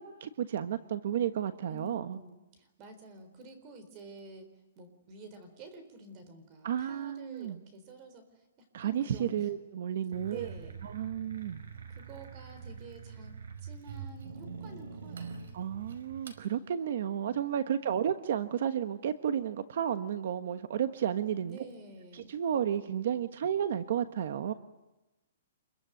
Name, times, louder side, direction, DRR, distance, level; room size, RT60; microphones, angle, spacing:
voice 1, 0.0-2.2 6.6-7.6 8.7-10.5 10.8-11.6 15.5-21.6 22.1-24.5, right 9 dB, 50° right, 11 dB, 1.2 m, -32 dB
voice 2, 1.7-9.5 10.3-10.8 11.9-15.4 17.7-18.0 21.5-22.4, right 2 dB, 25° right, 9 dB, 4.0 m, -50 dB
sound 1, 10.1-16.4, right 6 dB, 80° right, 4.7 m, -44 dB
27.5 x 22.5 x 9.1 m, 1.0 s
hypercardioid pair, 175°, 0 cm